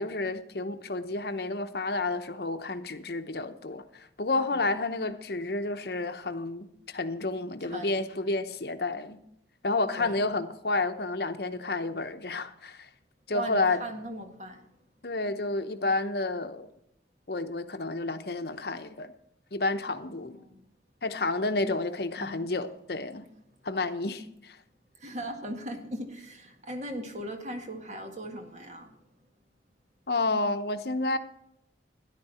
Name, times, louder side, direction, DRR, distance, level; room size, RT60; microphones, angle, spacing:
voice 1, 0.0-9.2 9.6-12.9 13.3-13.8 15.0-16.7 17.3-19.1 19.5-20.4 21.0-23.3 23.6-24.6 30.1-31.2, left 2 dB, 60° left, 9 dB, 0.9 m, -30 dB
voice 2, 7.7-8.0 10.0-10.1 13.3-14.6 22.2-22.5 25.0-28.9, right 1 dB, 40° right, 4 dB, 1.8 m, -38 dB
13.0 x 10.5 x 4.3 m, 0.79 s
head